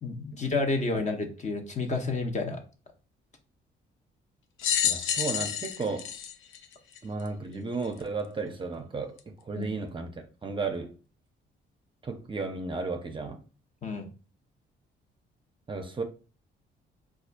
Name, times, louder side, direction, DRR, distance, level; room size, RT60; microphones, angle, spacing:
voice 1, 0.0-2.6 9.5-9.7 13.8-14.1, left 3 dB, 35° left, 0.8 m, -30 dB
sound 1, 4.6-7.3 8.0-8.1 9.2-9.3, left 9 dB, 80° left, 0.4 m, -29 dB
voice 2, 4.8-6.1 7.0-11.0 12.0-13.4 15.7-16.0, right 3 dB, 25° right, 0.5 m, -34 dB
4.1 x 2.4 x 2.5 m
cardioid pair, 90°, 20 cm